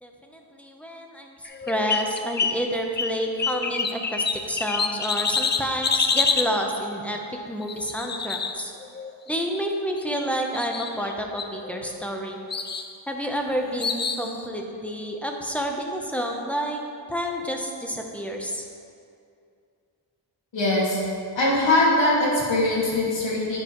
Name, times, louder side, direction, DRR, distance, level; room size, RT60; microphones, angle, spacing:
voice 1, 0.0-8.7 9.3-12.4 13.1-16.8 17.1-18.7, equal, 5° left, 1 dB, 0.8 m, -29 dB
sound 1, 1.5-2.6 3.0-6.5 7.6-9.1 10.0-10.3 10.5-11.1 11.4-12.1 12.5-12.9 13.8-14.3, left 5 dB, 25° left, 0.3 m, -27 dB
voice 2, 20.5-21.0 21.4-23.6, left 2 dB, 80° left, -6 dB, 2.3 m, -21 dB
9.6 x 8.7 x 3.1 m, 2.4 s
wide cardioid pair, 125°, 45 cm